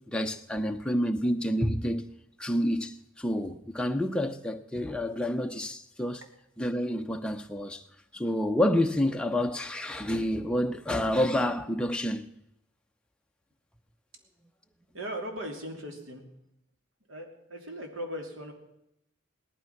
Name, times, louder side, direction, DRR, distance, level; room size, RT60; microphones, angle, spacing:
voice 1, 0.1-2.0 2.4-6.2 6.6-7.8 8.1-12.3, equal, 5° left, 0.7 m, -28 dB
voice 2, 14.9-16.2 17.1-18.5, equal, 80° right, 3.0 m, -38 dB
18.0 x 12.5 x 5.9 m
head